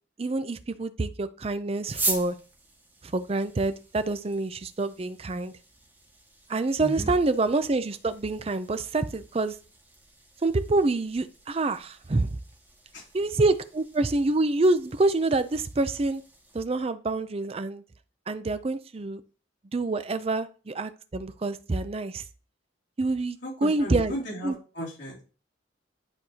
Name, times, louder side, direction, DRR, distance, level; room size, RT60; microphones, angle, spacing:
voice 1, 0.2-2.4 3.0-5.5 6.5-9.5 10.4-12.4 13.1-16.2 16.5-17.8 18.3-19.2 19.7-22.2 23.0-24.1 24.4-24.5, right 2 dB, 30° right, 12 dB, 0.5 m, -26 dB
sound 1, 1.8-16.6, right 3 dB, 10° right, 1.6 m, -41 dB
voice 2, 6.8-7.1 12.9-13.1 23.4-25.2, equal, 70° left, -5 dB, 3.0 m, -35 dB
10.5 x 4.6 x 2.8 m, 0.37 s
head